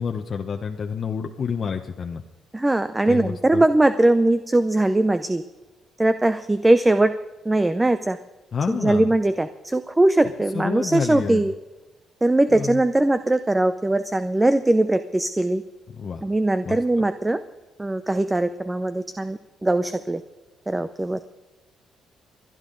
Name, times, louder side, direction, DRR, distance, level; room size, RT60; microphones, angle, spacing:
voice 1, 0.0-2.2 3.1-3.6 8.5-9.1 10.5-11.5 12.5-12.8 15.9-16.2 16.6-17.0, left 6 dB, 45° left, 3 dB, 0.9 m, -29 dB
voice 2, 2.5-5.4 6.0-7.1 7.4-8.2 8.7-11.5 12.2-15.6 16.2-17.4 17.8-20.2 20.7-21.2, right 2 dB, 15° right, 11 dB, 0.6 m, -20 dB
29.0 x 10.5 x 3.9 m, 1.2 s
cardioid pair, 90°, 0 cm